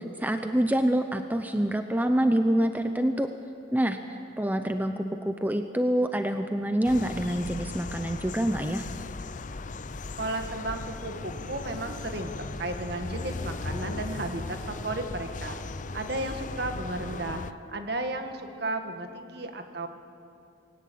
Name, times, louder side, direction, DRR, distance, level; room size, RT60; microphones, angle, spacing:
voice 1, 0.0-3.3 3.7-4.0 4.4-8.8, right 1 dB, 10° right, 7 dB, 0.6 m, -26 dB
sound 1, 6.8-17.5, left 3 dB, 40° left, 0.6 m, -37 dB
voice 2, 10.2-15.6 15.9-19.9, right 2 dB, 55° right, 6 dB, 1.8 m, -34 dB
20.5 x 18.0 x 8.6 m, 2.6 s
head